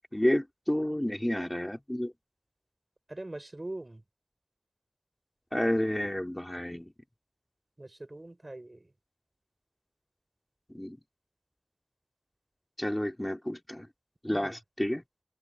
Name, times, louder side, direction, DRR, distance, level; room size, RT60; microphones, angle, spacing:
voice 1, 0.1-2.1 5.5-6.9 10.7-11.0 12.8-13.9 14.2-15.0, left 1 dB, 20° left, 2.7 m, -30 dB
voice 2, 3.1-4.0 7.8-8.9 14.3-14.6, right 1 dB, 45° right, 4.4 m, -42 dB
wide cardioid pair, 50°, 0 cm